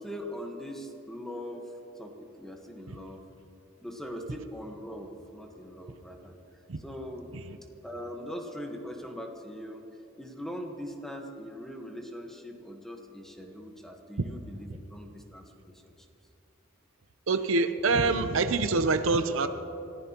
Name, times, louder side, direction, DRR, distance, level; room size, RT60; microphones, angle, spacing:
voice 1, 0.0-3.2 3.8-6.3 6.8-7.3 7.8-9.9 10.2-15.9, equal, ahead, 2 dB, 1.3 m, -41 dB
voice 2, 17.3-19.5, right 3 dB, 70° right, 9 dB, 0.7 m, -25 dB
28.0 x 15.0 x 3.0 m, 2.9 s
head